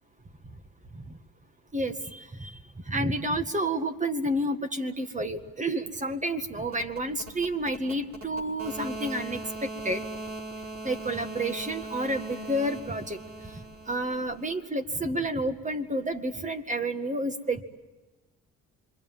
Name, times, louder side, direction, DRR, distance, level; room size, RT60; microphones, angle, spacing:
voice 1, 1.7-2.5 2.9-10.0 10.8-13.2 13.9-17.6, right 1 dB, 25° right, 8 dB, 1.9 m, -30 dB
sound 1, 6.6-14.5, right 2 dB, 60° right, 4.6 m, -40 dB
27.0 x 23.5 x 7.4 m, 1.2 s
cardioid pair, 90°, 30 cm